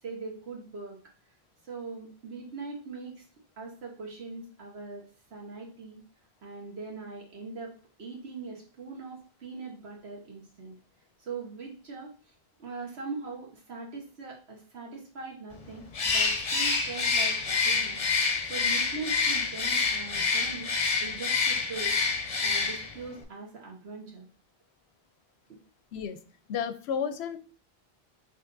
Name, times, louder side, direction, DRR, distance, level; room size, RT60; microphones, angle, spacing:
voice 1, 0.0-1.0 1.6-3.2 3.6-5.0 5.3-6.0 6.4-10.7 11.2-12.1 12.6-18.0 18.4-20.7 21.0-22.0 22.4-24.3, right 4 dB, 85° right, -1 dB, 1.4 m, -41 dB
Bird, 15.9-23.0, left 4 dB, 45° left, 0.6 m, -27 dB
voice 2, 26.5-27.4, left 7 dB, 90° left, 9 dB, 0.8 m, -32 dB
6.1 x 2.8 x 2.5 m, 0.40 s
omnidirectional pair, 1.0 m